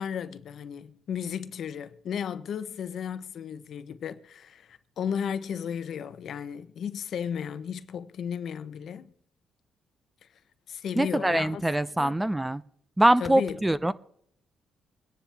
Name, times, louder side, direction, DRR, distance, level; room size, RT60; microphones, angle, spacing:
voice 1, 0.0-9.1 10.7-11.6 12.0-12.2 13.2-13.6, left 8 dB, 65° left, 0.9 m, -34 dB
voice 2, 11.0-12.6 13.0-13.9, right 1 dB, 10° right, 0.6 m, -23 dB
23.5 x 10.5 x 3.5 m
cardioid pair, 90°, 0 cm